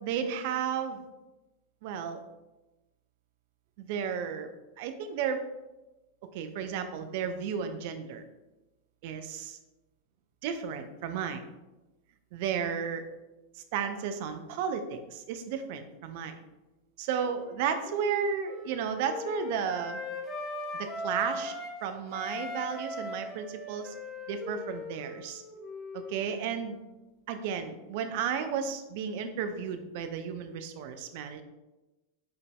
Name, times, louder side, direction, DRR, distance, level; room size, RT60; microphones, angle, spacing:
voice 1, 0.0-1.0 1.8-2.2 3.8-4.5 4.8-5.4 6.3-8.2 9.0-9.6 10.4-11.4 12.3-13.0 13.7-16.4 17.0-20.0 20.8-21.5 21.8-23.9 24.3-25.4 25.9-26.8 27.3-31.4, right 7 dB, 50° right, 8 dB, 0.4 m, -33 dB
Wind instrument woodwind instrument, 17.2-21.8 22.1-26.6, left 1 dB, 15° left, 0.9 m, -39 dB
5.2 x 4.0 x 2.3 m, 1.1 s
figure-of-eight pair, 90°, 0 cm